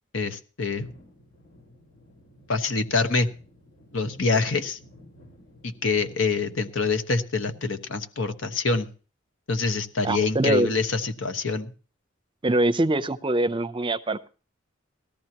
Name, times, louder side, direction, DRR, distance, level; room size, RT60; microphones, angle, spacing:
voice 1, 0.1-0.9 2.5-3.3 3.9-4.8 5.6-8.9 9.5-11.7, left 4 dB, 90° left, 1.2 m, -25 dB
sound 1, 0.7-6.7, equal, 70° left, 4.8 m, -53 dB
voice 2, 10.0-10.7 12.4-14.3, right 2 dB, 25° right, 0.6 m, -23 dB
18.5 x 13.5 x 2.9 m
head